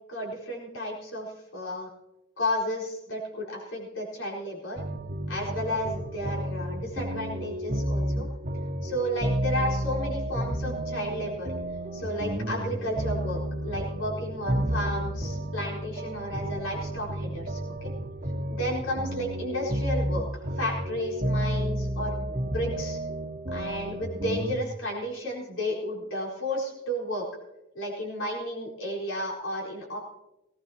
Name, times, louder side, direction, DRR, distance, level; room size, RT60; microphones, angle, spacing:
voice 1, 0.1-1.9 2.4-4.8 5.3-8.3 8.8-11.5 11.9-17.9 18.5-20.2 20.5-23.0 23.5-27.2 27.7-30.0, equal, 85° left, -2 dB, 4.3 m, -32 dB
sound 1, 4.8-24.5, right 1 dB, 45° right, 2.0 m, -31 dB
19.5 x 17.5 x 2.9 m, 0.94 s
head